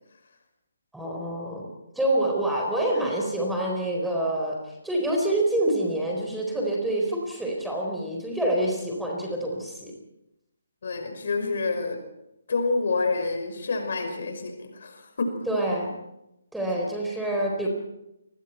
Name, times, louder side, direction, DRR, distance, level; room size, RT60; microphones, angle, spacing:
voice 1, 0.9-1.6 1.9-9.9 15.5-15.9 16.5-17.7, right 1 dB, ahead, -1 dB, 4.3 m, -27 dB
voice 2, 10.8-12.0 12.5-15.4, left 3 dB, 55° left, 6 dB, 5.5 m, -28 dB
29.0 x 22.0 x 4.6 m, 0.87 s
figure-of-eight pair, 145°, 0 cm